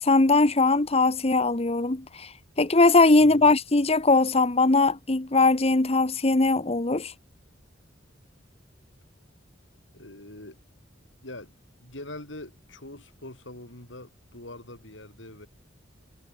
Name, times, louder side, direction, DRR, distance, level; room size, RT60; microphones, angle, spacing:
voice 1, 0.0-2.3 2.6-7.1, left 3 dB, 35° left, 1.1 m, -20 dB
voice 2, 3.2-3.5 9.9-10.6 11.2-11.5 11.8-15.5, left 1 dB, 80° left, 7.2 m, -43 dB
head